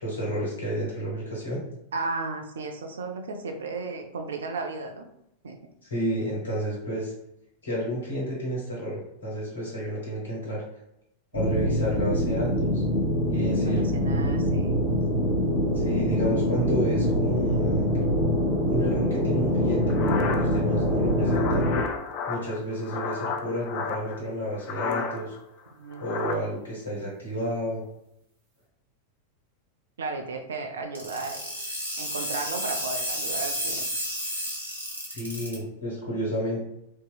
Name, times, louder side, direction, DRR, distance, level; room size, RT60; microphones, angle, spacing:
voice 1, 0.0-1.6 5.8-7.1 7.6-10.6 11.3-12.8 13.3-13.8 15.7-17.9 18.7-21.7 22.3-25.3 26.0-27.8 35.1-36.7, equal, 70° left, -4 dB, 1.2 m, -31 dB
voice 2, 1.9-5.1 5.4-5.6 13.5-15.1 25.7-26.4 30.0-31.4 32.0-33.9, right 3 dB, 65° right, 4 dB, 0.4 m, -34 dB
sound 1, 11.3-21.8, equal, 50° right, 1.1 m, -24 dB
sound 2, 19.9-24.2 24.6-25.4 25.7-26.4, left 5 dB, 45° left, 0.3 m, -33 dB
sound 3, 30.9-35.5, equal, 85° right, 0.9 m, -31 dB
2.9 x 2.7 x 2.3 m, 0.81 s
figure-of-eight pair, 90°, 0 cm